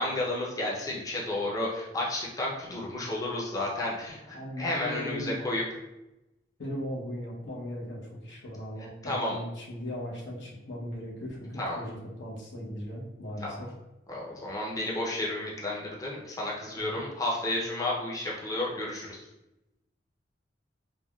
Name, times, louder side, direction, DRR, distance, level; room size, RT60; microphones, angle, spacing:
voice 1, 0.0-5.6 9.0-9.4 11.6-11.8 13.4-13.5 14.1-19.2, left 1 dB, 20° left, -4 dB, 0.5 m, -32 dB
voice 2, 4.1-5.7 6.6-13.7 16.8-17.0, equal, 90° left, -3 dB, 0.8 m, -38 dB
3.4 x 2.2 x 2.2 m, 0.94 s
head